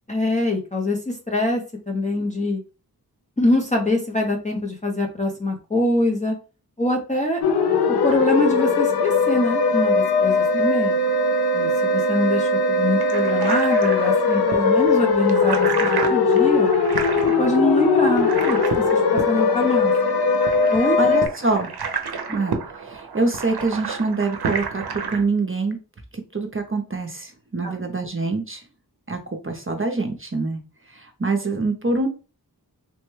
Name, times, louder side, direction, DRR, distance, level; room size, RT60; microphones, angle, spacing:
voice 1, 0.1-2.6 3.4-6.4 6.8-7.4 8.0-11.0 11.5-16.7 17.4-18.6 18.9-19.9 20.7-21.0 27.6-27.7, left 2 dB, 20° left, 0 dB, 0.6 m, -24 dB
sound 1, 7.4-21.3, left 4 dB, 75° left, 0.5 m, -20 dB
sound 2, 12.9-25.2, right 5 dB, 75° right, 0.6 m, -31 dB
voice 2, 21.0-21.7 22.3-24.8 25.1-25.8 26.3-28.6 29.1-29.2 29.4-30.6 30.9-32.1, right 3 dB, 35° right, 3 dB, 0.6 m, -25 dB
3.3 x 2.1 x 3.1 m, 0.34 s
wide cardioid pair, 50°, 38 cm